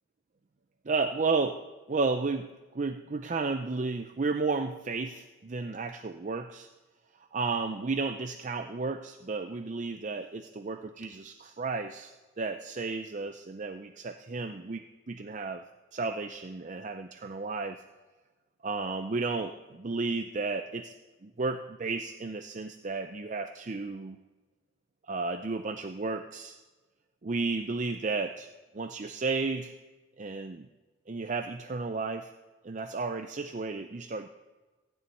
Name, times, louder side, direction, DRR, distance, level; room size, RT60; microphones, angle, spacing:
voice 1, 0.9-1.6 1.9-2.5 2.7-6.7 7.3-15.6 15.9-17.8 18.6-20.9 21.2-24.2 25.1-26.6 27.2-28.5 28.7-29.8 30.2-30.7 31.1-32.3 32.6-34.3, right 4 dB, 40° right, 8 dB, 0.5 m, -33 dB
15.5 x 7.0 x 9.3 m, 1.3 s
head